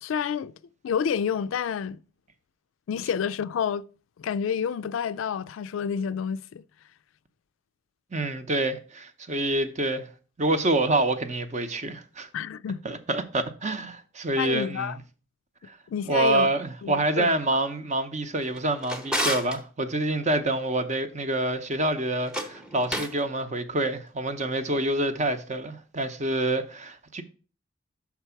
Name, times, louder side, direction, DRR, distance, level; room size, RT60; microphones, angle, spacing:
voice 1, 0.0-0.5 0.8-2.0 2.9-3.8 4.2-6.6 12.3-12.8 14.4-15.0 15.9-16.5 16.8-17.3, left 7 dB, 80° left, 0.3 m, -29 dB
voice 2, 8.1-10.1 10.4-12.3 12.8-15.0 15.7-15.8 16.1-27.2, right 2 dB, 40° right, 0.7 m, -27 dB
Drawer open or close, 18.4-19.6 22.2-23.2, equal, 5° right, 0.8 m, -31 dB
5.9 x 4.5 x 5.7 m
head